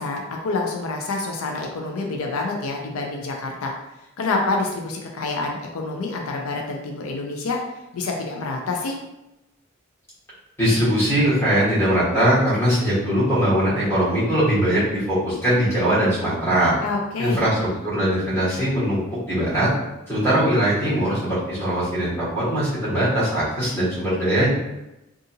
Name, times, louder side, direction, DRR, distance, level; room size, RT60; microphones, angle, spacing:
voice 1, 0.0-3.7 4.2-7.6 7.9-9.0 16.8-17.4, left 3 dB, 85° left, 1 dB, 0.4 m, -27 dB
voice 2, 10.6-16.7 17.2-19.7 20.1-24.5, equal, 10° left, -11 dB, 1.3 m, -21 dB
2.7 x 2.4 x 2.7 m, 0.94 s
head